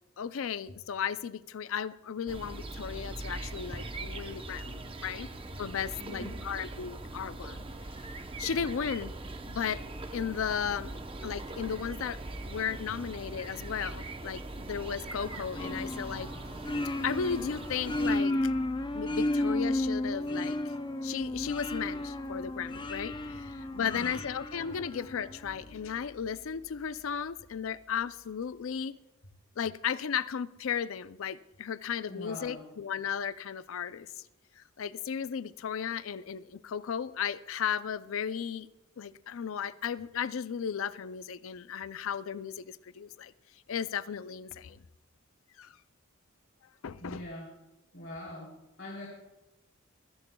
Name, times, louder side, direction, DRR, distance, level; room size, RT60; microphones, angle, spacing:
voice 1, 0.2-5.3 5.6-7.6 8.4-9.1 9.5-9.8 10.1-11.0 11.2-16.3 17.0-18.3 18.9-20.6 21.0-29.0 29.6-34.2 34.6-38.7 39.0-43.3 43.7-44.8 45.6-45.7 46.8-47.2, left 7 dB, 75° left, 0.4 m, -35 dB
sound 1, 2.3-18.2, right 2 dB, 25° right, 0.7 m, -41 dB
voice 2, 6.0-6.4 23.8-24.1 32.1-32.6 46.9-47.5 47.9-49.1, left 1 dB, 60° left, 3.0 m, -43 dB
sound 2, 14.6-28.8, equal, 85° right, 3.7 m, -53 dB
sound 3, 15.6-25.4, left 1 dB, 20° left, 0.5 m, -33 dB
26.0 x 11.0 x 2.3 m
head